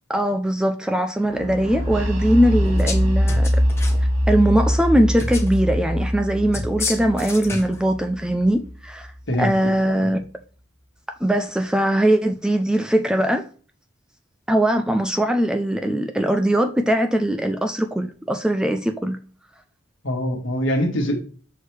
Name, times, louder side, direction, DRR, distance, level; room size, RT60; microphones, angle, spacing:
voice 1, 0.1-3.5 4.3-9.1 9.4-10.2 11.2-13.5 14.5-19.2, right 1 dB, 5° right, 0.3 m, -20 dB
sound 1, 1.3-9.0, equal, 80° right, 1.9 m, -23 dB
sound 2, 2.6-3.0 3.3-4.0 5.2-5.6 6.5-7.8, left 3 dB, 15° left, 0.8 m, -30 dB
voice 2, 20.0-21.2, equal, 65° left, 1.5 m, -23 dB
6.4 x 4.6 x 3.3 m
head